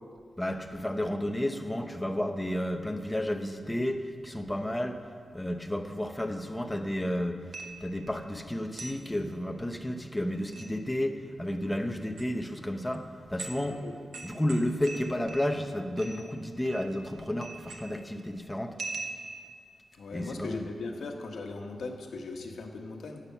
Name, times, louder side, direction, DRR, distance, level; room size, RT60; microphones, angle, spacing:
voice 1, 0.4-5.0 5.3-7.5 7.8-13.8 14.2-18.8 20.1-20.7, left 1 dB, 10° left, 5 dB, 0.8 m, -32 dB
sound 1, 7.5-8.0 8.8-9.0 10.3-10.7 12.0-12.2 12.9-13.0 13.4-13.7 14.1-15.7 16.0-16.3 16.7-17.1 17.4-18.1 18.8-19.5, right 3 dB, 65° right, 1.2 m, -41 dB
voice 2, 20.0-23.2, left 3 dB, 80° left, 2 dB, 1.4 m, -38 dB
13.0 x 8.5 x 5.9 m, 2.3 s
wide cardioid pair, 165°, 0 cm